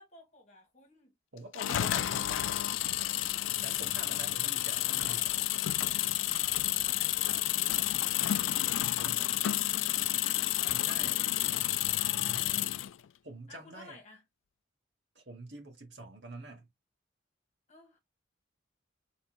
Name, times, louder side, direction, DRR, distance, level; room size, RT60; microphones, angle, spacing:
voice 1, 0.0-1.1 6.7-8.6 10.9-12.0 12.4-12.8 13.5-14.2 17.7-18.0, left 2 dB, 35° left, 1.6 m, -56 dB
voice 2, 1.3-2.6 3.6-5.3 9.0-9.4 10.7-11.2 12.0-12.6 13.2-14.0 15.1-16.7, right 2 dB, 65° right, 1.4 m, -47 dB
sound 1, 1.5-12.9, left 13 dB, 85° left, 0.3 m, -30 dB
4.0 x 3.7 x 2.4 m
head